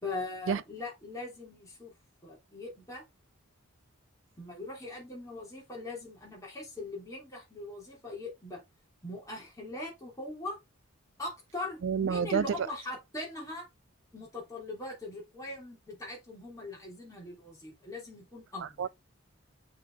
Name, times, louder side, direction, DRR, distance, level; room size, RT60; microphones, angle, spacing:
voice 1, 0.0-1.9 2.2-3.0 4.4-8.6 9.0-10.6 11.2-13.7 14.1-18.9, left 2 dB, 15° left, 3.2 m, -41 dB
voice 2, 11.8-12.5 18.6-18.9, right 7 dB, 55° right, 0.3 m, -29 dB
6.6 x 4.3 x 3.5 m
head